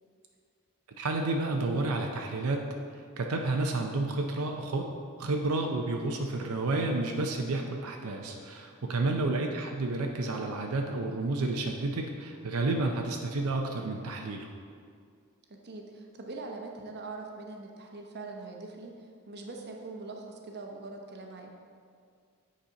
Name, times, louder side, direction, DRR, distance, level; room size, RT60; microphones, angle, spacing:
voice 1, 1.0-2.7 2.9-4.9 5.2-14.5, right 2 dB, 85° right, 2 dB, 0.6 m, -30 dB
voice 2, 15.6-21.6, right 3 dB, 50° right, 2 dB, 0.8 m, -42 dB
8.3 x 4.2 x 5.1 m, 2.2 s
head